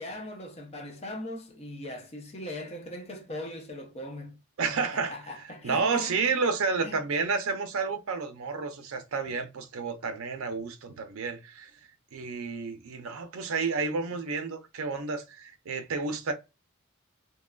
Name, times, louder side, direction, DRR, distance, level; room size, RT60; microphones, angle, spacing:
voice 1, 0.0-6.3 6.8-7.0, left 1 dB, 30° left, 0.6 m, -40 dB
voice 2, 4.6-5.2 5.6-11.7 12.1-16.3, right 4 dB, 80° right, 0.5 m, -30 dB
2.9 x 2.3 x 2.2 m
head